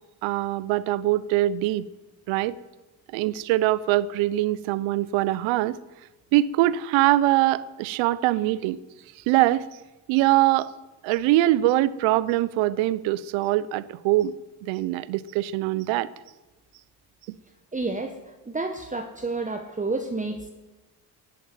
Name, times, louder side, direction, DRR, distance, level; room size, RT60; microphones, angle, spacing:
voice 1, 0.2-1.9 2.3-2.5 3.1-5.8 6.3-8.8 9.3-9.7 10.1-10.7 11.0-14.3 14.7-16.1, right 15 dB, 75° right, 18 dB, 0.8 m, -23 dB
voice 2, 17.7-18.2 18.4-20.5, right 3 dB, 15° right, 5 dB, 1.5 m, -30 dB
15.0 x 8.5 x 9.5 m, 1.1 s
hypercardioid pair, 60°, 47 cm